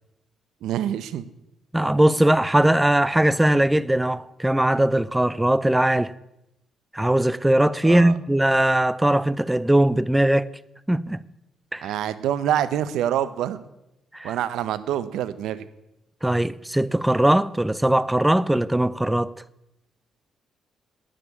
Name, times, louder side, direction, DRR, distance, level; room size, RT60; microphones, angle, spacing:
voice 1, 0.6-1.3 7.8-8.1 11.8-13.6 14.2-15.7, right 10 dB, 85° right, 0.8 m, -26 dB
voice 2, 1.7-6.1 6.9-10.5 10.9-11.2 11.7-11.9 14.1-14.3 16.2-19.3, right 1 dB, 10° right, 0.5 m, -20 dB
10.0 x 9.3 x 8.6 m
cardioid pair, 90°, 0 cm